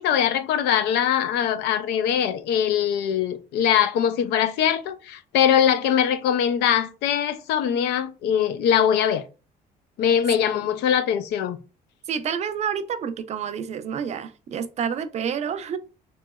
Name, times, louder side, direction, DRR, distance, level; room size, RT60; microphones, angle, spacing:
voice 1, 0.0-9.3 10.0-11.6, left 9 dB, 80° left, 0.4 m, -22 dB
voice 2, 12.1-15.8, right 7 dB, 40° right, 0.4 m, -29 dB
3.0 x 2.8 x 2.2 m
cardioid pair, 110°, 17 cm